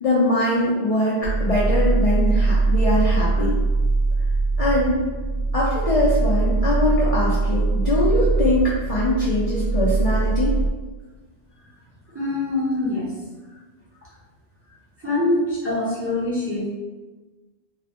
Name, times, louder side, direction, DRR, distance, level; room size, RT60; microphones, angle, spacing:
voice 1, 0.0-3.5 4.6-5.1 5.5-10.5, left 1 dB, 75° left, -8 dB, 0.3 m, -22 dB
sound 1, 1.2-10.7, right 3 dB, 65° right, 0.7 m, -21 dB
voice 2, 12.1-13.1 15.0-16.7, left 2 dB, 15° right, -9 dB, 0.5 m, -24 dB
2.3 x 2.0 x 2.8 m, 1.3 s
omnidirectional pair, 1.2 m